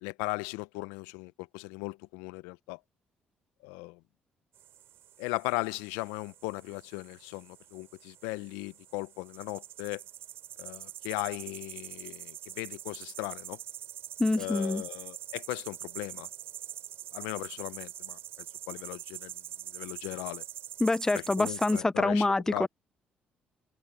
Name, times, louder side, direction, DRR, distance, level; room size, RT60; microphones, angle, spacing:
voice 1, 0.0-2.8 3.6-4.0 5.2-10.0 10.6-13.6 14.4-16.3 17.1-20.4 21.1-22.7, left 23 dB, 90° left, 0.7 m, -38 dB
sound 1, 4.5-21.8, right 11 dB, 70° right, 3.4 m, -44 dB
voice 2, 14.2-14.8 20.8-22.7, left 2 dB, 15° left, 0.4 m, -26 dB
open air
supercardioid pair, 55°, 4 cm